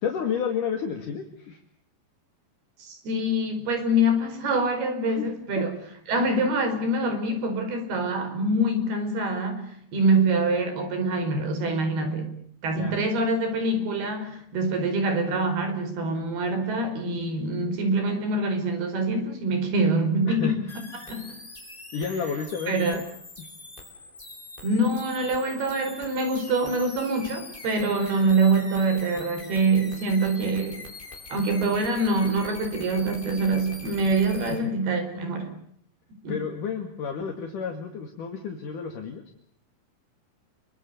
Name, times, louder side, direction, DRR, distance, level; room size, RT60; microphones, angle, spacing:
voice 1, 0.0-1.6 5.1-5.3 5.6-5.7 12.7-13.0 20.2-20.6 21.9-23.0 23.4-23.5 34.5-34.7 36.3-39.2, left 6 dB, 60° left, 4 dB, 3.5 m, -31 dB
voice 2, 2.8-5.7 6.1-12.4 12.6-20.6 21.1-21.3 22.7-23.0 24.6-30.8 31.3-35.5 36.2-36.4, right 2 dB, 75° right, 7 dB, 6.8 m, -25 dB
sound 1, 20.7-34.6, left 2 dB, 15° left, 4.3 m, -43 dB
28.0 x 24.0 x 6.9 m, 0.65 s
omnidirectional pair, 4.5 m